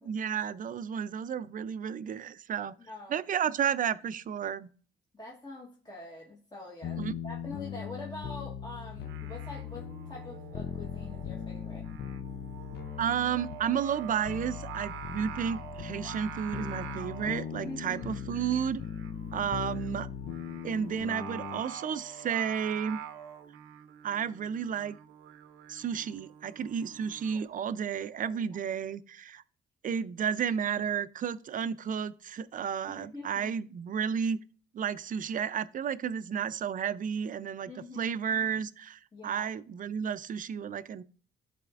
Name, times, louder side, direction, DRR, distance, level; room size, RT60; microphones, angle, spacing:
voice 1, 0.0-2.7 3.1-4.7 7.0-7.1 13.0-18.8 19.3-20.1 20.6-23.0 24.0-25.0 25.7-29.4 29.8-34.4 34.7-41.0, right 8 dB, 45° right, 0.4 m, -32 dB
voice 2, 2.8-3.2 5.1-11.9 17.6-18.4 28.2-28.5 32.9-33.5 37.7-38.2 39.1-39.5, left 2 dB, 20° left, 1.2 m, -45 dB
sound 1, 6.8-21.6, left 9 dB, 55° left, 0.5 m, -39 dB
Singing, 8.9-27.4, right 9 dB, 90° right, 0.6 m, -46 dB
11.5 x 4.2 x 2.4 m
cardioid pair, 90°, 20 cm